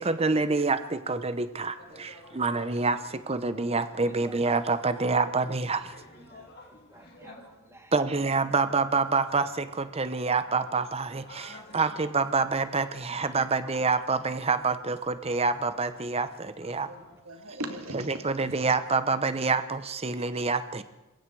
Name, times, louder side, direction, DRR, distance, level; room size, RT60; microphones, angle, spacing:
voice 1, 0.0-6.0 7.9-16.9 18.1-20.8, right 4 dB, 30° right, 12 dB, 0.8 m, -27 dB
sound 1, 1.8-17.2, left 2 dB, 50° left, 3.9 m, -54 dB
voice 2, 4.0-4.4 5.2-5.3 6.1-7.9 11.4-11.5 11.8-11.9 13.1-13.2 13.6-13.7, right 2 dB, 15° right, 6 dB, 1.9 m, -53 dB
voice 3, 16.9-18.6, right 1 dB, 80° right, 6 dB, 2.5 m, -39 dB
26.0 x 21.5 x 4.7 m, 1.0 s
head